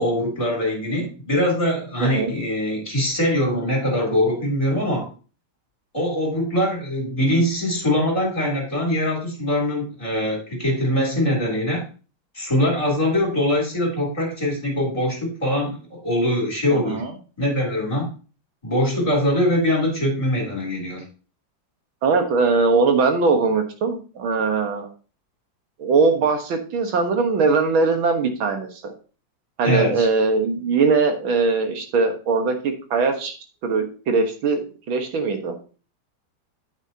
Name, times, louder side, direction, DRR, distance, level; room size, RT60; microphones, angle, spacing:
voice 1, 0.0-5.1 5.9-11.8 12.3-17.0 17.4-18.1 18.6-21.0 29.6-30.1, left 1 dB, 15° left, -2 dB, 3.4 m, -22 dB
voice 2, 2.0-2.3 16.7-17.1 22.0-24.9 25.8-28.9 29.6-33.4 33.6-34.6 34.9-35.6, right 4 dB, 85° right, 5 dB, 2.3 m, -21 dB
9.1 x 9.0 x 2.9 m, 0.36 s
omnidirectional pair, 2.1 m